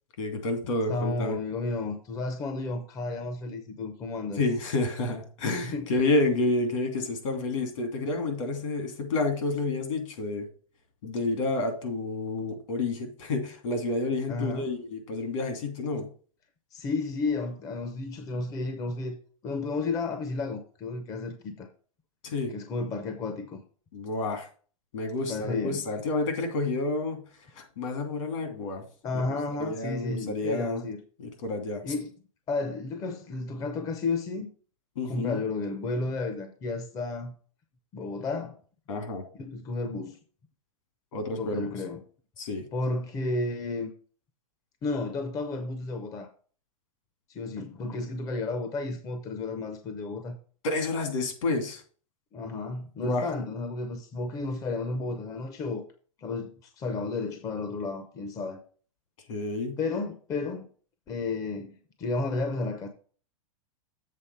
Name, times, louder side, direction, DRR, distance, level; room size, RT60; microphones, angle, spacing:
voice 1, 0.2-1.4 4.4-10.5 11.0-16.1 22.2-22.5 23.9-24.5 24.9-27.2 27.5-28.8 29.6-30.9 31.2-31.8 35.0-35.4 38.9-39.2 41.1-41.7 42.4-42.6 50.6-51.8 53.0-53.2 59.3-59.8, left 2 dB, 65° left, 2.7 m, -29 dB
voice 2, 0.9-4.4 5.7-5.9 14.3-14.7 16.7-19.2 19.4-21.7 22.5-23.6 25.3-25.8 29.0-31.0 31.8-32.1 32.5-34.5 35.0-37.4 37.9-38.6 39.3-40.2 41.4-42.0 42.7-43.9 44.8-46.3 47.3-50.4 52.3-55.9 56.2-58.6 59.8-60.7 61.1-62.9, left 3 dB, 20° left, 0.7 m, -32 dB
7.5 x 4.0 x 6.7 m
supercardioid pair, 160°, 18 cm